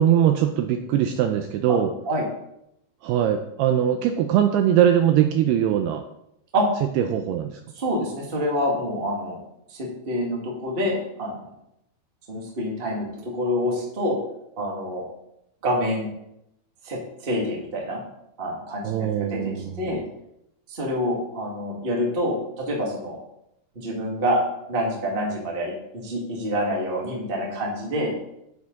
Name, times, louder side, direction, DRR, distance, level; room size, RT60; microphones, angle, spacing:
voice 1, 0.0-1.9 3.0-6.0 7.0-7.6 18.8-20.0, right 10 dB, 90° right, 6 dB, 2.3 m, -21 dB
voice 2, 7.7-9.4 9.7-11.5 12.3-14.2 14.6-15.0 15.6-16.1 16.8-18.0 18.4-19.5 19.8-20.0 20.7-23.2 23.7-24.4 24.7-28.1, equal, 30° right, -2 dB, 1.0 m, -27 dB
9.7 x 8.5 x 4.1 m, 0.80 s
omnidirectional pair, 5.2 m